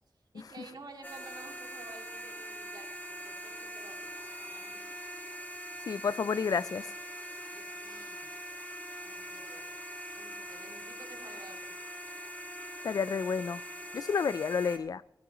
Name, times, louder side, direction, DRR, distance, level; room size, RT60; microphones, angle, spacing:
voice 1, 0.3-4.8 7.5-8.3 9.0-9.7 10.2-11.8, right 3 dB, 75° right, 2 dB, 2.3 m, -52 dB
sound 1, 1.0-14.8, equal, 25° left, 2.2 m, -43 dB
voice 2, 5.9-6.9 12.8-13.6 13.9-15.0, left 6 dB, 60° left, 19 dB, 0.3 m, -30 dB
16.0 x 14.0 x 3.0 m, 0.97 s
wide cardioid pair, 110°, 7 cm